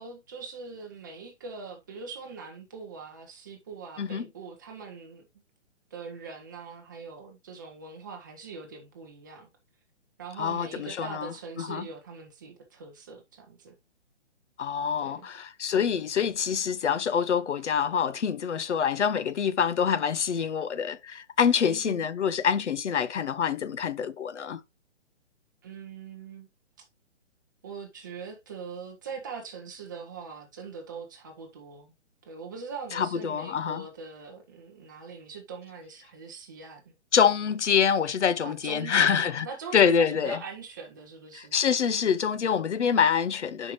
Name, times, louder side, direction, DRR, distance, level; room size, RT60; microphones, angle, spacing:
voice 1, 0.0-5.2 5.9-9.5 10.2-13.7 15.0-15.3 21.7-22.0 25.6-26.5 27.6-31.9 32.2-36.9 38.4-41.6, right 5 dB, 15° right, 0.8 m, -42 dB
voice 2, 10.4-11.9 14.6-24.6 32.9-33.8 37.1-39.5 39.7-40.4 41.3-43.7, left 7 dB, 75° left, 0.8 m, -26 dB
9.7 x 5.0 x 3.0 m
hypercardioid pair, 175°, 36 cm